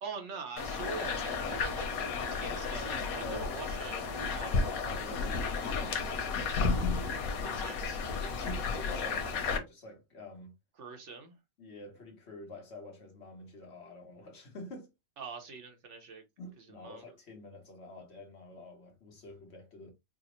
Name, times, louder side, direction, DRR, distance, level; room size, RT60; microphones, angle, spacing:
voice 1, 0.0-4.5 7.4-8.0 10.8-11.4 15.2-16.2 16.6-17.0, right 4 dB, 65° right, 1.1 m, -44 dB
sound 1, 0.6-9.6, left 4 dB, 85° left, 1.2 m, -33 dB
voice 2, 3.2-3.5 4.4-6.4 7.4-7.7 8.2-10.5 11.6-14.9 16.4-19.9, left 2 dB, 55° left, 1.2 m, -47 dB
4.8 x 2.0 x 2.9 m
omnidirectional pair, 1.4 m